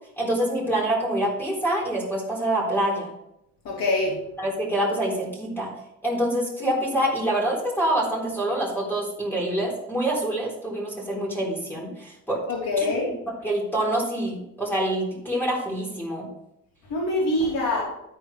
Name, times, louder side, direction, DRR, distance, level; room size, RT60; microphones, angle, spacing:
voice 1, 0.2-3.1 4.4-5.7 6.0-12.4 13.4-16.3, right 1 dB, 5° left, -4 dB, 4.1 m, -26 dB
voice 2, 3.6-4.1 12.5-13.1 16.9-17.8, left 2 dB, 85° left, -4 dB, 3.1 m, -24 dB
13.0 x 4.8 x 5.0 m, 0.82 s
cardioid pair, 145°, 32 cm